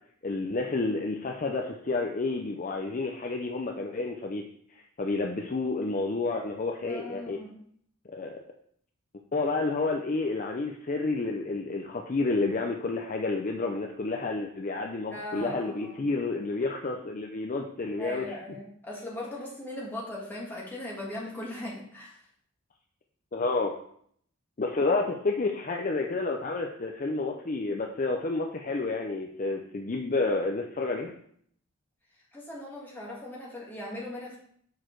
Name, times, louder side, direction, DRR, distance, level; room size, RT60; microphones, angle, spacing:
voice 1, 0.2-4.4 5.0-7.4 8.1-8.3 9.3-18.4 23.3-23.7 24.6-31.1, left 3 dB, 35° left, 2 dB, 0.5 m, -30 dB
voice 2, 6.9-7.6 15.1-16.0 18.0-22.2 32.3-34.4, left 1 dB, 10° left, -5 dB, 1.7 m, -39 dB
6.4 x 4.7 x 4.5 m, 0.64 s
head